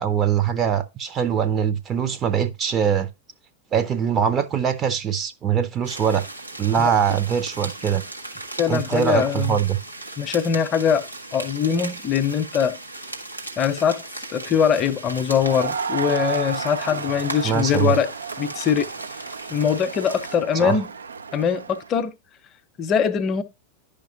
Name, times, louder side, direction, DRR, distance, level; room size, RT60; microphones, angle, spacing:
voice 1, 0.0-3.1 3.7-6.3 6.6-8.0 8.7-9.8 17.4-17.9 20.5-20.8, right 8 dB, 25° right, 0.8 m, -22 dB
sound 1, 5.8-20.4, right 2 dB, 90° right, 1.5 m, -37 dB
voice 2, 8.6-9.6 10.2-11.1 11.3-12.8 13.6-14.0 14.3-18.1 18.4-18.9 19.5-20.9 21.3-22.1 22.8-23.4, left 7 dB, 30° left, 0.8 m, -22 dB
Crowd, 15.4-21.9, right 6 dB, 70° right, 0.6 m, -32 dB
10.5 x 5.2 x 2.9 m
figure-of-eight pair, 90°, 0 cm